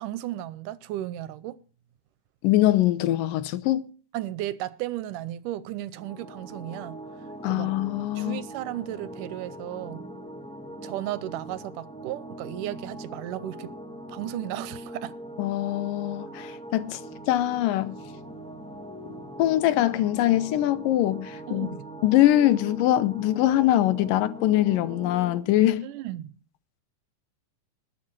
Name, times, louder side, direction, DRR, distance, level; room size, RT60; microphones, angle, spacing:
voice 1, 0.0-1.6 4.1-7.7 8.2-10.1 10.8-13.7 14.1-15.2 21.5-21.9 25.8-26.3, right 14 dB, 80° right, 2.2 m, -35 dB
voice 2, 2.4-3.9 7.4-8.4 15.4-17.0 17.3-17.9 19.4-21.7 22.0-25.9, left 14 dB, 90° left, 2.5 m, -23 dB
sound 1, 5.9-25.4, right 1 dB, 5° left, 0.7 m, -41 dB
20.0 x 7.1 x 4.6 m
omnidirectional pair, 3.8 m